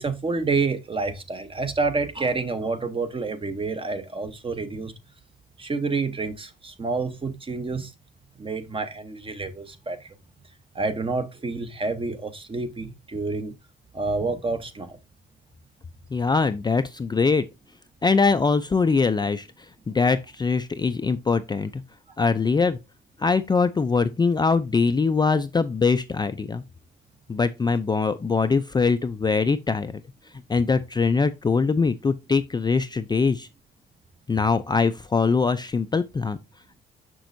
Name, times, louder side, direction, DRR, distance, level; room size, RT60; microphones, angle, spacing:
voice 1, 0.0-4.9 5.6-7.9 8.4-10.1 10.7-13.5 13.9-15.0, right 3 dB, 25° right, 0.8 m, -28 dB
voice 2, 16.1-17.4 18.0-19.5 19.9-21.8 22.2-22.8 23.2-26.6 27.3-30.0 30.5-33.5 34.3-36.4, left 4 dB, 20° left, 0.4 m, -22 dB
6.1 x 6.0 x 2.6 m
cardioid pair, 90°, 20 cm